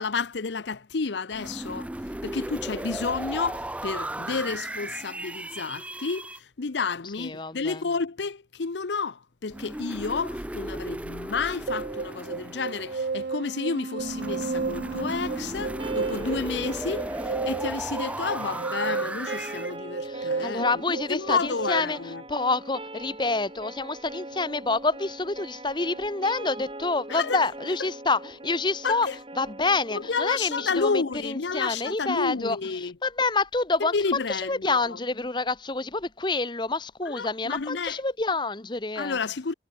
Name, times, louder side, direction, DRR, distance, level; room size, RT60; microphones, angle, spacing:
voice 1, 0.0-1.9 2.2-22.2 27.1-27.4 28.8-29.2 29.9-32.9 33.8-35.0 37.1-38.0 39.0-39.5, left 4 dB, 80° left, 0.8 m, -31 dB
sound 1, 1.3-6.4 9.5-13.3 14.0-19.7, right 1 dB, 10° right, 0.5 m, -35 dB
voice 2, 7.2-7.8 20.0-22.0 22.3-29.1 29.4-39.2, left 3 dB, 25° left, 1.1 m, -28 dB
sound 2, 11.7-21.8, right 4 dB, 55° right, 0.5 m, -33 dB
sound 3, 15.8-31.8, right 1 dB, 30° right, 7.2 m, -42 dB
head